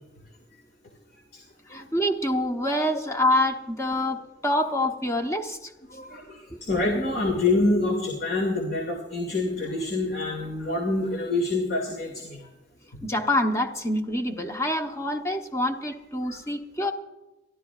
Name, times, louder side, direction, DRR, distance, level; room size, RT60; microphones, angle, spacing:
voice 1, 1.7-5.7 13.0-16.9, left 1 dB, 15° left, 4 dB, 1.0 m, -26 dB
voice 2, 5.9-12.4 12.9-13.0 16.3-16.4, left 2 dB, 60° left, 1 dB, 2.3 m, -26 dB
29.5 x 13.0 x 2.4 m, 1.0 s
head